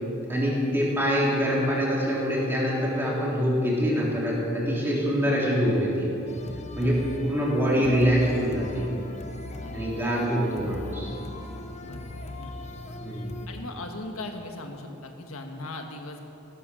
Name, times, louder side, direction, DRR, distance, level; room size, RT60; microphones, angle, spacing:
voice 1, 0.3-6.1 6.8-8.9 9.7-11.1 13.0-13.3, equal, 10° right, -5 dB, 3.7 m, -25 dB
sound 1, 6.3-13.5, left 1 dB, 35° left, 1.0 m, -39 dB
voice 2, 6.7-7.1 9.6-10.0 11.8-12.5 13.5-16.2, left 2 dB, 90° left, 4 dB, 1.5 m, -39 dB
15.5 x 13.0 x 6.3 m, 2.9 s
head